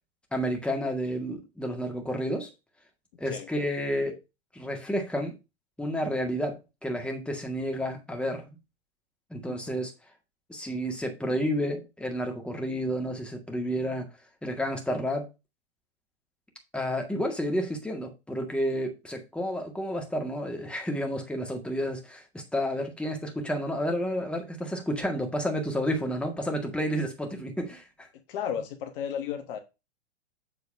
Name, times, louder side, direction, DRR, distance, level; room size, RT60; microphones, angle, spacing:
voice 1, 0.3-2.5 3.2-4.2 4.5-5.3 5.8-8.6 9.3-9.9 10.5-14.1 14.4-15.3 16.7-27.9, equal, 5° left, 1.9 m, -30 dB
voice 2, 9.5-9.9 28.3-29.6, left 8 dB, 50° left, 1.4 m, -34 dB
7.7 x 4.0 x 5.3 m
hypercardioid pair, 100°, 33 cm